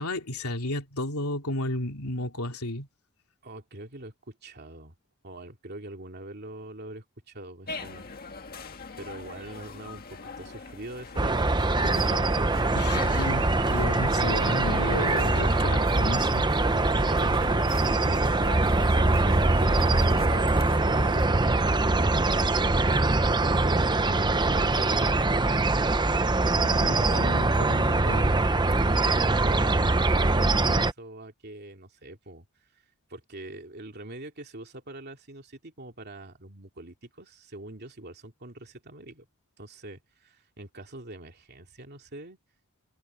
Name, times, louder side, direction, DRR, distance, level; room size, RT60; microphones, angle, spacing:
voice 1, 0.0-2.9 12.7-16.5 26.6-28.4, left 1 dB, 85° left, 3.1 m, -32 dB
voice 2, 3.4-4.9 5.2-8.1 9.0-12.6 16.7-25.4 26.8-27.4 29.4-32.4 32.7-32.8 33.1-39.3 39.6-42.4, right 1 dB, 50° right, 2.8 m, -43 dB
sound 1, 7.7-21.3, left 4 dB, 45° left, 1.7 m, -41 dB
sound 2, 11.2-30.9, right 2 dB, 20° right, 0.8 m, -23 dB
head